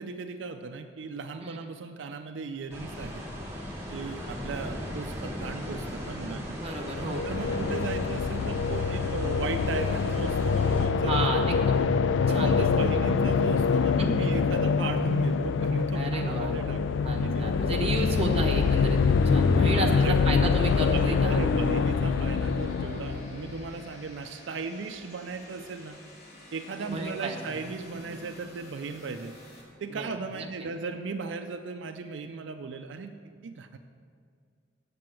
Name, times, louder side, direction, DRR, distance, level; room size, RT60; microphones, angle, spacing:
voice 1, 0.0-3.2 3.9-6.6 7.3-11.5 12.3-17.5 19.8-20.2 20.9-26.0 26.5-29.3 29.8-33.1 33.4-33.8, right 4 dB, 80° right, 7 dB, 0.4 m, -37 dB
sound 1, 2.7-10.9, equal, 15° right, 2.2 m, -37 dB
voice 2, 6.5-7.4 11.0-11.7 12.3-12.6 14.0-14.3 15.9-16.6 17.0-21.4 26.8-27.5 29.9-30.1 30.3-30.5, right 2 dB, 35° right, 0 dB, 1.2 m, -32 dB
sound 2, 6.8-23.8, left 5 dB, 90° left, 0.4 m, -25 dB
sound 3, 17.9-29.6, left 1 dB, 60° left, 2.6 m, -51 dB
7.6 x 7.6 x 7.5 m, 2.1 s
head